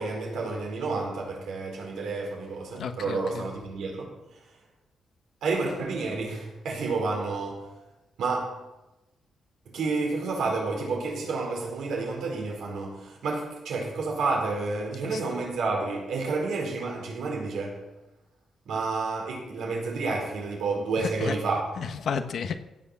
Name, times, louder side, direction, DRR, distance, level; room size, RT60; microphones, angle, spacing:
voice 1, 0.0-4.4 5.4-7.8 8.2-8.7 9.6-18.0 18.6-21.7, right 3 dB, 85° right, 4.6 m, -30 dB
voice 2, 2.8-3.5 15.0-15.2 21.0-21.4 21.8-22.6, left 6 dB, 70° left, 1.2 m, -32 dB
16.5 x 7.2 x 7.2 m
cardioid pair, 95°, 0 cm